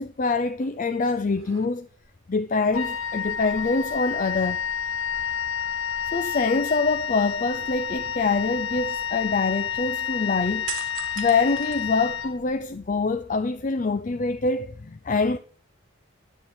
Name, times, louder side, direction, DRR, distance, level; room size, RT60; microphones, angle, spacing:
voice 1, 0.0-1.9 2.3-4.6 6.1-10.7 11.2-15.4, left 4 dB, 40° left, 0.4 m, -25 dB
sound 1, 0.6-0.9 1.3-2.1 3.3-4.6 4.9-5.0 10.7-12.5 13.0-13.9, right 10 dB, 70° right, 1.3 m, -41 dB
Wind instrument woodwind instrument, 2.7-12.8, left 8 dB, 85° left, 1.1 m, -30 dB
10.0 x 8.4 x 4.2 m
head